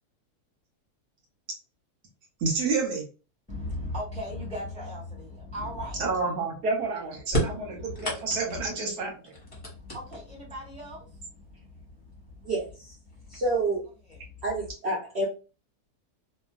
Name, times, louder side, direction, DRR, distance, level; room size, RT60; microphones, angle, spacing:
voice 1, 2.4-3.0 6.0-9.3, right 4 dB, 75° right, 1.4 m, -29 dB
voice 2, 3.5-6.2 7.4-8.7 9.4-12.5 13.1-13.4 14.1-14.4, left 1 dB, 5° left, 1.3 m, -39 dB
sound 1, 7.2-8.7 9.3-10.4 11.5-11.6 12.5-12.6 13.1-13.6, right 1 dB, 25° left, 1.0 m, -31 dB
voice 3, 12.4-12.9 13.3-13.8 14.4-15.3, right 2 dB, 50° right, 1.0 m, -28 dB
3.0 x 2.4 x 2.4 m
omnidirectional pair, 1.7 m